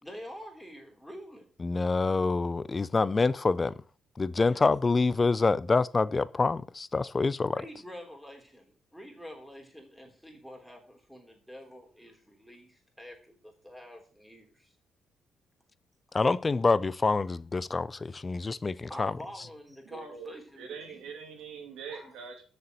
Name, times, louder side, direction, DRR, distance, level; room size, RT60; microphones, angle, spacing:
voice 1, 0.0-1.5 4.5-4.6 7.5-14.7 18.9-21.1 21.9-22.1, equal, ahead, 3.5 m, -47 dB
voice 2, 1.6-3.7 4.2-7.6 16.1-19.1, left 3 dB, 25° left, 0.5 m, -26 dB
voice 3, 19.8-22.4, right 6 dB, 85° right, 2.7 m, -43 dB
6.9 x 6.8 x 7.8 m
cardioid pair, 90°, 0 cm